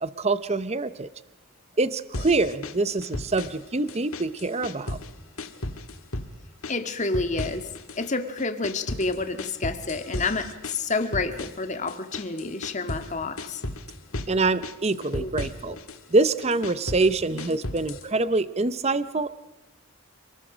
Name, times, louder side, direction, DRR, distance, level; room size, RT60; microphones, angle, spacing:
voice 1, 0.0-1.1 1.8-5.0 14.3-15.8 16.1-19.3, right 3 dB, 30° right, 14 dB, 0.7 m, -25 dB
sound 1, 2.1-3.6 3.9-5.1 5.4-6.3 6.6-8.1 8.4-13.1 13.4-14.3 14.6-16.0 16.4-18.1, left 2 dB, 75° left, 1.8 m, -35 dB
voice 2, 6.7-7.7 8.0-13.6 15.2-15.3 15.6-15.8 17.4-17.5, left 3 dB, 35° left, 8 dB, 1.8 m, -29 dB
29.5 x 20.0 x 5.1 m, 1.1 s
head